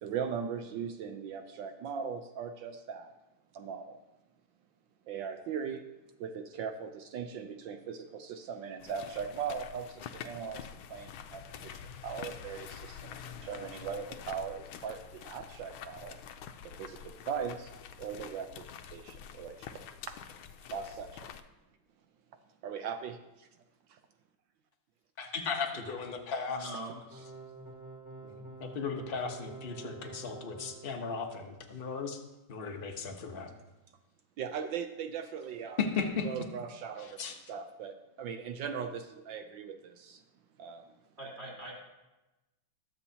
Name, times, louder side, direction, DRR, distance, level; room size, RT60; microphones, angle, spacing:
voice 1, 0.0-3.1 3.6-3.8 5.1-5.9 6.2-9.9 10.2-10.6 10.9-11.1 11.3-11.4 12.0-12.7 13.5-15.0 15.3-16.2 17.3-17.5 18.0-18.5 18.9-19.0 19.4-19.5 20.7-21.1 22.6-23.1 34.4-35.8 36.2-37.1 37.5-39.8 40.6-40.8, right 7 dB, 70° right, 8 dB, 1.2 m, -38 dB
sound 1, 8.8-21.4, left 8 dB, 80° left, 1.4 m, -47 dB
voice 2, 25.2-26.7 28.2-32.2 32.5-33.5 35.8-36.3 37.0-37.3, left 5 dB, 40° left, 3 dB, 0.9 m, -36 dB
voice 3, 26.5-26.9 41.2-41.7, right 1 dB, 30° right, -5 dB, 4.2 m, -42 dB
sound 2, 27.1-31.0, right 3 dB, 5° right, 2.7 m, -47 dB
20.5 x 7.4 x 2.8 m, 1.0 s
omnidirectional pair, 2.4 m